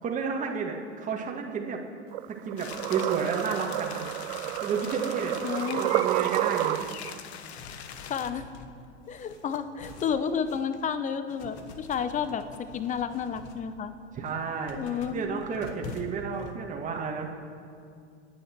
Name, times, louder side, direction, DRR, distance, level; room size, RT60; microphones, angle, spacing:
voice 1, 0.0-1.8 2.3-4.1 4.6-5.4 5.8-6.8 14.1-14.8 15.1-17.4, right 5 dB, 20° right, 0 dB, 2.0 m, -31 dB
sound 1, 2.1-7.2, right 17 dB, 50° right, 0.4 m, -30 dB
sound 2, 2.6-8.3, left 8 dB, 65° left, 1.2 m, -42 dB
voice 2, 5.4-5.9 8.0-8.5 9.1-12.4 12.7-13.9 14.8-15.4, left 7 dB, 20° left, 12 dB, 1.0 m, -31 dB
sound 3, 7.5-10.9 11.3-13.6 14.1-16.5, left 4 dB, 45° left, 2.0 m, -46 dB
29.5 x 9.9 x 4.6 m, 2.4 s
figure-of-eight pair, 100°, 35 cm